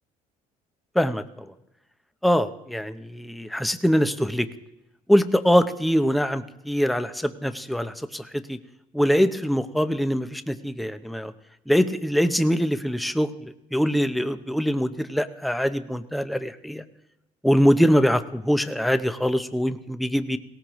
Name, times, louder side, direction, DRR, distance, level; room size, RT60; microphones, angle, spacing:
voice 1, 0.9-1.5 2.2-4.5 5.1-8.6 8.9-11.3 11.7-16.8 17.4-20.4, equal, ahead, 10 dB, 0.6 m, -23 dB
18.0 x 18.0 x 3.1 m, 0.91 s
cardioid pair, 110°, 17 cm